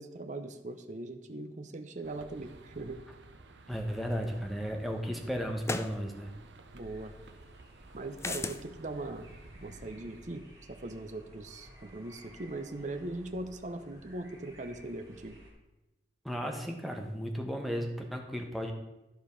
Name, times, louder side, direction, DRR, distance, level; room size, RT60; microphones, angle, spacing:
voice 1, 0.0-3.0 6.7-7.1 7.9-9.3 9.6-15.4, right 2 dB, 45° right, 7 dB, 0.8 m, -40 dB
sound 1, 2.0-10.3, right 2 dB, 85° right, 0.8 m, -53 dB
voice 2, 3.7-6.3 16.2-18.7, equal, ahead, 2 dB, 1.1 m, -35 dB
sound 2, 4.2-4.3 5.6-6.0 8.2-8.6, left 3 dB, 15° left, 0.4 m, -34 dB
sound 3, 6.8-15.5, right 1 dB, 20° right, 3.1 m, -56 dB
12.5 x 5.2 x 5.2 m, 1.0 s
head